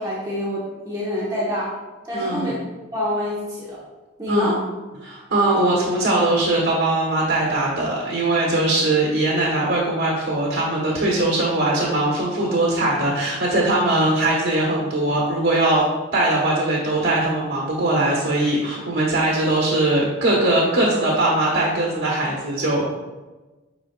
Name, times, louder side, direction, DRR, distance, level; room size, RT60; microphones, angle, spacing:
voice 1, 0.0-1.7 2.0-2.5 2.9-3.8 4.2-4.6, left 1 dB, 20° right, -9 dB, 1.3 m, -26 dB
voice 2, 2.1-2.5 4.3-4.6 5.0-15.8 16.1-23.0, right 2 dB, 85° right, -4 dB, 1.4 m, -21 dB
8.7 x 4.5 x 2.4 m, 1.2 s
head